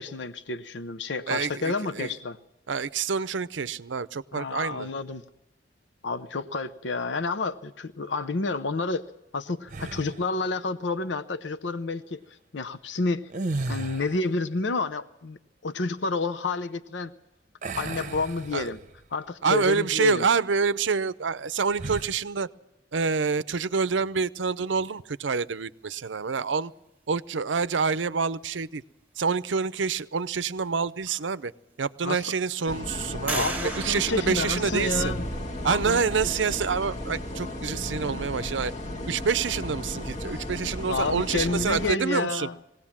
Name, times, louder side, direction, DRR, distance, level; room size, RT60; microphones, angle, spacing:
voice 1, 0.0-2.4 4.3-5.2 6.0-9.0 9.3-12.2 12.5-13.3 13.7-17.1 17.8-18.8 19.1-20.3 32.0-32.3 33.3-35.2 35.6-36.3 40.9-42.6, left 3 dB, 70° left, 13 dB, 0.8 m, -30 dB
voice 2, 2.7-4.9 18.5-18.7 19.4-22.5 22.9-26.7 27.1-28.8 29.2-31.5 31.8-33.4 33.8-35.1 35.6-38.7 39.1-42.5, right 5 dB, 80° right, 15 dB, 0.6 m, -27 dB
sound 1, 9.7-10.3 13.2-14.3 17.6-19.0 19.5-19.7 21.7-22.2, right 2 dB, 45° right, 0.8 m, -34 dB
sound 2, 31.0-31.1 31.7-32.3 33.3-35.2, right 3 dB, 10° right, 1.4 m, -35 dB
sound 3, 32.7-41.9, left 1 dB, 40° left, 1.6 m, -34 dB
21.5 x 17.0 x 7.4 m, 0.91 s
head